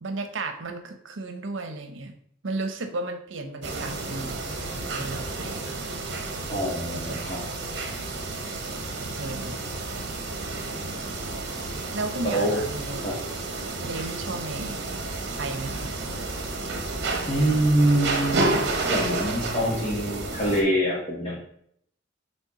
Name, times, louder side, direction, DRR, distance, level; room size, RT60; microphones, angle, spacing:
voice 1, 0.0-2.1 2.4-5.9 6.9-7.3 9.1-9.6 11.9-13.1 13.8-14.8 15.4-15.9, right 3 dB, 80° right, 7 dB, 0.8 m, -34 dB
sound 1, 3.6-20.6, right 2 dB, 60° right, 1.1 m, -31 dB
voice 2, 6.5-7.4 12.2-12.6 13.0-13.2 17.3-18.4 18.8-21.4, right 1 dB, 25° left, -7 dB, 1.5 m, -24 dB
7.2 x 3.3 x 4.2 m, 0.67 s
head